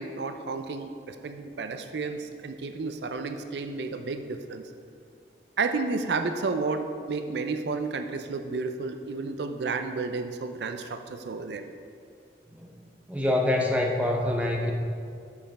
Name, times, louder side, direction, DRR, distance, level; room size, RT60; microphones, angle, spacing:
voice 1, 0.0-4.7 5.6-11.6, right 4 dB, 75° right, 7 dB, 0.5 m, -31 dB
voice 2, 13.1-14.7, left 1 dB, 10° right, 1 dB, 0.6 m, -25 dB
6.6 x 5.7 x 5.2 m, 2.3 s
head